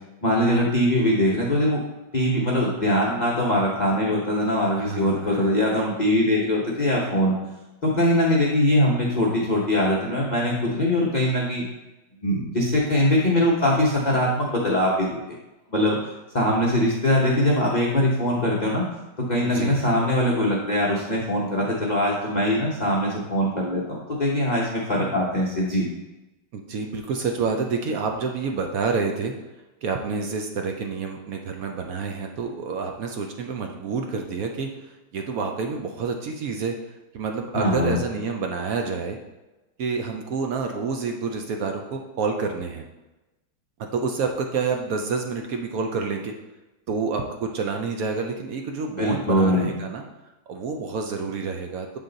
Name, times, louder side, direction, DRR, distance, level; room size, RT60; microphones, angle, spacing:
voice 1, 0.2-1.8 2.1-7.3 7.8-11.6 12.2-15.1 15.7-16.0 16.3-18.8 19.2-25.9 37.5-38.0 49.0-49.7, left 1 dB, 45° left, -4 dB, 0.5 m, -22 dB
voice 2, 4.8-5.6 19.4-19.9 26.5-29.3 29.8-36.8 37.1-39.2 39.8-42.8 43.9-46.3 46.9-50.0 50.5-52.0, right 4 dB, 80° right, 3 dB, 0.7 m, -28 dB
7.9 x 3.8 x 3.8 m, 1.1 s
omnidirectional pair, 2.1 m